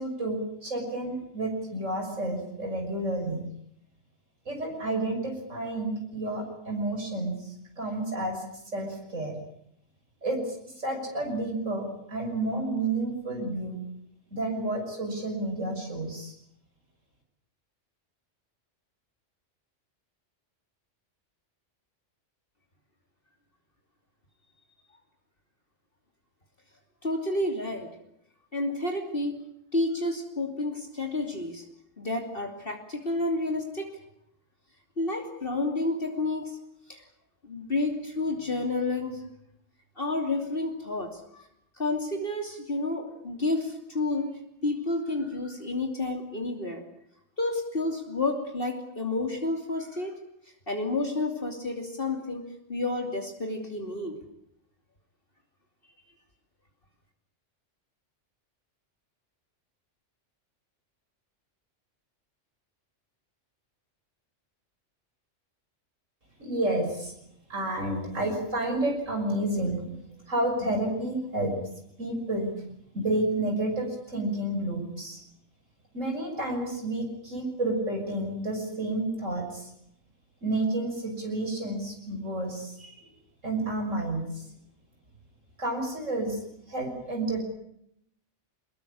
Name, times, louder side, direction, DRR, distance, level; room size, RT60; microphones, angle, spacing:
voice 1, 0.0-3.4 4.5-8.4 8.7-9.4 10.2-13.8 14.3-16.3 66.4-67.1 67.5-70.0 70.3-71.6 72.0-72.6 72.9-75.2 75.9-79.7 80.4-83.1 83.4-84.4 85.6-86.4 86.7-87.4, right 2 dB, 80° right, 2 dB, 6.3 m, -30 dB
voice 2, 27.0-27.9 28.5-29.4 29.7-31.6 32.0-33.9 35.0-36.6 36.9-37.0 37.4-39.2 40.0-41.5 41.8-46.8 47.4-50.2 50.7-54.2, left 2 dB, 45° left, 3 dB, 3.1 m, -30 dB
24.5 x 20.5 x 8.7 m, 0.75 s
omnidirectional pair, 1.3 m